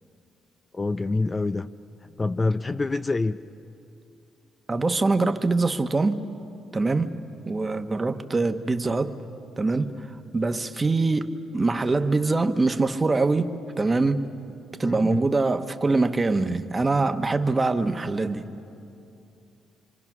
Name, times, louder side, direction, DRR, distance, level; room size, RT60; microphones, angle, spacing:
voice 1, 0.7-1.7 2.2-3.4 14.8-15.3, left 3 dB, 25° left, 11 dB, 0.5 m, -26 dB
voice 2, 4.7-6.3 6.7-7.1 7.5-9.2 9.6-14.2 14.8-18.5, right 3 dB, 25° right, 8 dB, 1.2 m, -24 dB
26.5 x 26.5 x 6.1 m, 2.7 s
cardioid pair, 90°, 0 cm